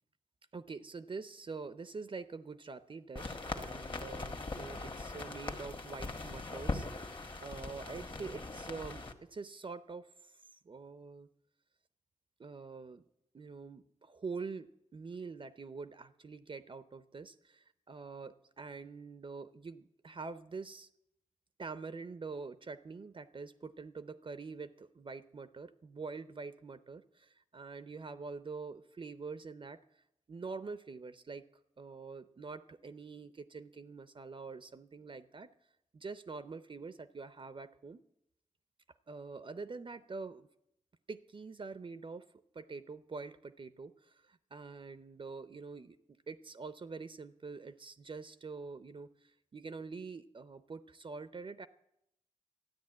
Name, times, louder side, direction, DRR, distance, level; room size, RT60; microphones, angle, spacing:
voice 1, 0.5-7.1 7.4-11.3 12.4-13.0 13.3-20.9 21.6-29.8 30.3-31.5 31.8-35.5 35.9-38.0 39.1-40.5 41.1-42.2 42.5-51.7, right 4 dB, 40° right, 12 dB, 0.6 m, -45 dB
sound 1, 3.2-9.1, left 2 dB, 40° left, 1.5 m, -41 dB
13.0 x 9.8 x 8.6 m, 0.80 s
wide cardioid pair, 85°, 13 cm